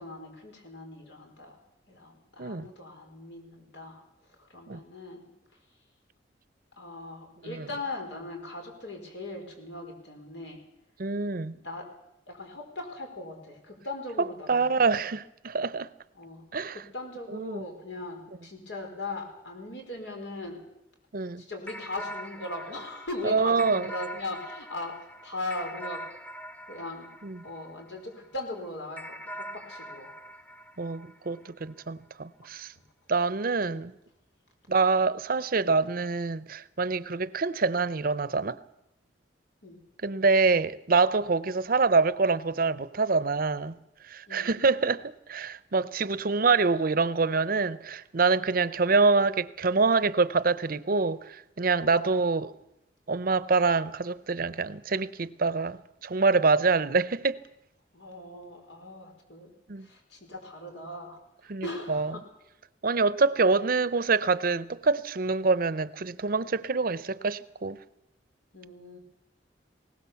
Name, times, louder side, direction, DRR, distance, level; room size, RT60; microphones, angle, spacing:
voice 1, 0.0-1.6 1.9-4.0 4.4-5.2 6.8-10.6 11.3-11.9 12.3-14.8 16.2-16.4 16.7-20.6 21.4-26.1 26.7-27.1 27.4-30.1 33.6-33.8 39.6-39.8 44.3-44.5 51.8-52.0 57.9-59.5 59.8-61.2 61.6-62.2 68.5-69.0, left 2 dB, 85° left, 4.9 m, -39 dB
voice 2, 11.0-11.5 14.5-15.9 16.5-16.8 17.3-17.6 21.1-21.4 23.2-23.9 27.2-27.4 30.8-32.7 33.1-33.9 34.7-38.6 40.0-43.8 44.0-52.5 53.1-57.4 59.7-59.9 61.5-62.1 62.8-67.8, right 4 dB, 55° right, 0.7 m, -26 dB
sound 1, 21.7-28.3 29.0-31.7, equal, 10° left, 0.7 m, -43 dB
20.5 x 18.5 x 7.1 m
head